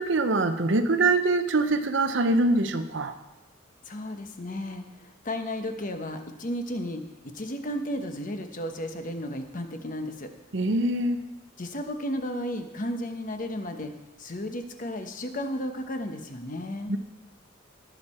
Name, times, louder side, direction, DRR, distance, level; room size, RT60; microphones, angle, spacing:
voice 1, 0.0-3.1 10.5-11.3 16.9-17.0, right 2 dB, 65° right, 9 dB, 0.8 m, -24 dB
voice 2, 3.9-10.3 11.6-13.9 14.2-16.9, left 1 dB, 40° left, 6 dB, 1.0 m, -34 dB
18.5 x 6.4 x 4.4 m, 1.0 s
head